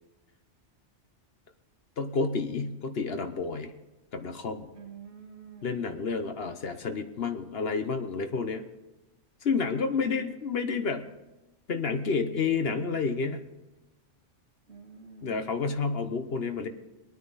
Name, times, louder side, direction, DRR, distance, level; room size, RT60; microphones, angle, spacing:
voice 1, 2.0-3.7 4.1-4.7 5.6-8.6 9.4-11.1 11.7-13.4 15.2-16.7, left 4 dB, 55° left, 8 dB, 1.1 m, -30 dB
voice 2, 4.7-5.9 9.6-10.4 14.7-15.5, right 5 dB, 65° right, 0 dB, 2.7 m, -48 dB
22.5 x 9.4 x 4.1 m, 1.1 s
omnidirectional pair, 1.3 m